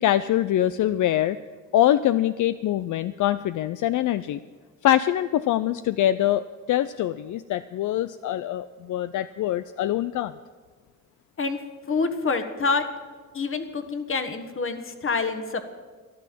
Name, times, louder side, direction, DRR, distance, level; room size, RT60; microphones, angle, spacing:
voice 1, 0.0-1.4 1.7-4.4 4.8-10.4, left 12 dB, 70° left, 14 dB, 0.5 m, -24 dB
voice 2, 11.9-12.8 13.3-15.7, left 4 dB, 40° left, 9 dB, 1.5 m, -27 dB
13.5 x 11.0 x 7.6 m, 1.5 s
cardioid pair, 85°, 31 cm